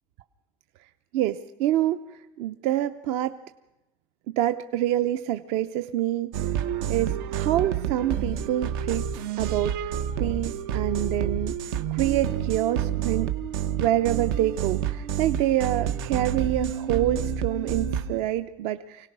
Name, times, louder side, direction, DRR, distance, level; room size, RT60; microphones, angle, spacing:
voice 1, 1.1-2.0 2.4-3.4 4.3-6.3 6.9-9.1 9.4-11.6 11.9-13.3 13.8-19.1, right 13 dB, 60° right, 11 dB, 0.6 m, -26 dB
sound 1, 6.3-18.2, right 8 dB, 90° right, 1.2 m, -29 dB
25.0 x 18.0 x 6.1 m, 0.96 s
cardioid pair, 155°, 12 cm